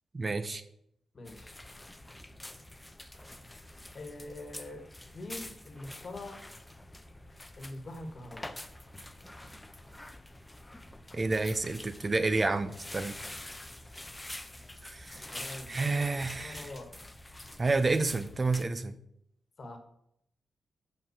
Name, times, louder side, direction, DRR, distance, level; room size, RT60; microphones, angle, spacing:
voice 1, 0.1-0.6 11.1-13.2 14.8-15.3 15.7-16.6 17.6-18.9, right 3 dB, 35° right, 11 dB, 0.5 m, -30 dB
voice 2, 1.1-1.6 3.9-4.8 5.1-6.4 7.6-8.6 15.3-16.9 19.6-19.8, left 2 dB, 50° left, 5 dB, 1.5 m, -44 dB
sound 1, 1.2-18.6, left 1 dB, 15° left, 0.6 m, -46 dB
5.7 x 5.4 x 6.5 m, 0.74 s
cardioid pair, 90°, 0 cm